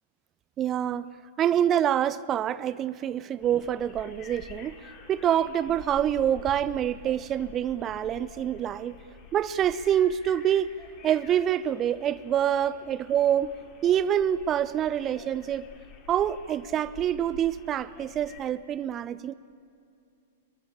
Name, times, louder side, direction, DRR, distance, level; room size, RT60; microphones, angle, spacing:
voice 1, 0.6-1.1 1.4-4.8 5.1-9.0 9.3-10.7 11.0-13.5 13.8-15.6 16.1-19.3, right 10 dB, 25° right, 18 dB, 0.6 m, -26 dB
sound 1, 3.4-18.4, left 6 dB, 30° left, 3.2 m, -49 dB
22.0 x 21.0 x 8.7 m, 2.6 s
figure-of-eight pair, 100°, 0 cm